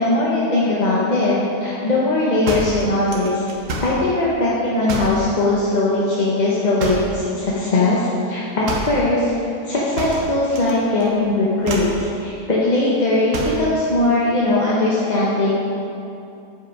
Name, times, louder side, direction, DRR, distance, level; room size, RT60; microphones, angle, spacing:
voice 1, 0.0-3.4 3.8-9.3 9.6-15.6, left 2 dB, 35° left, -7 dB, 0.8 m, -19 dB
sound 1, 2.5-4.0 4.9-5.2 6.8-7.2 8.6-9.0 10.0-10.7 11.0-11.3 11.6-12.0 13.3-13.7, right 2 dB, 55° right, 1.1 m, -28 dB
8.0 x 5.1 x 4.7 m, 2.6 s
omnidirectional pair, 1.8 m